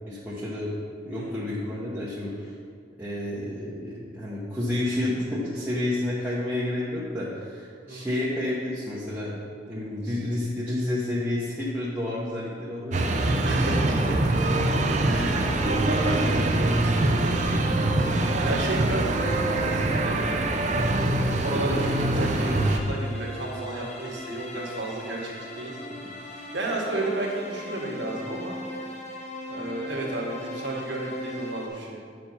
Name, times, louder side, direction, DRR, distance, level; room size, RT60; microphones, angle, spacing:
voice 1, 0.1-0.7 1.0-2.5 3.0-9.4 9.7-13.2, left 1 dB, 10° right, -9 dB, 0.9 m, -30 dB
sound 1, 12.9-22.8, right 2 dB, 40° right, 0.6 m, -24 dB
voice 2, 13.4-14.2 15.0-17.5 18.2-20.9 21.4-25.8 26.3-28.6 29.5-32.0, right 2 dB, 70° right, -2 dB, 1.5 m, -32 dB
sound 2, 21.5-31.7, left 1 dB, 40° left, 0.9 m, -39 dB
8.2 x 4.6 x 5.5 m, 2.1 s
head